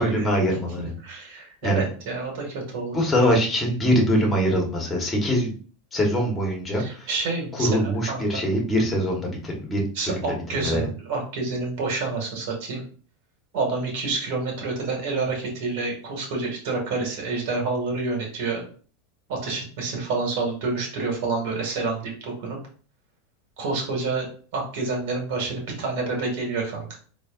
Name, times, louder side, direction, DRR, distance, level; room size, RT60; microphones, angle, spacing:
voice 1, 0.0-0.9 1.6-1.8 2.9-5.5 5.9-7.1 7.6-10.8, equal, 15° left, 0 dB, 1.4 m, -23 dB
voice 2, 0.8-3.0 6.8-8.4 9.9-12.8 13.5-18.7 19.3-22.6 23.6-24.3 24.5-26.9, right 3 dB, 70° right, 1 dB, 2.0 m, -28 dB
4.3 x 3.1 x 2.6 m, 0.41 s
supercardioid pair, 130°, 0 cm